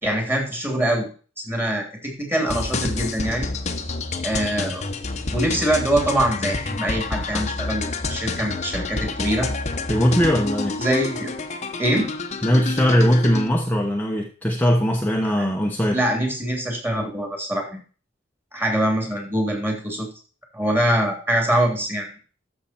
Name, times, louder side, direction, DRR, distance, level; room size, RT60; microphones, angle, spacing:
voice 1, 0.0-1.1 1.4-3.5 4.2-4.9 5.3-9.5 10.8-11.3 11.8-12.1 15.4-15.5 15.9-17.8 18.5-20.1 20.5-22.1, right 1 dB, 10° right, 2 dB, 3.1 m, -23 dB
sound 1, 2.5-13.5, left 3 dB, 35° left, 1.0 m, -28 dB
voice 2, 9.9-10.7 12.4-16.0, equal, 10° left, 0 dB, 1.0 m, -20 dB
13.0 x 6.7 x 4.4 m, 0.39 s
head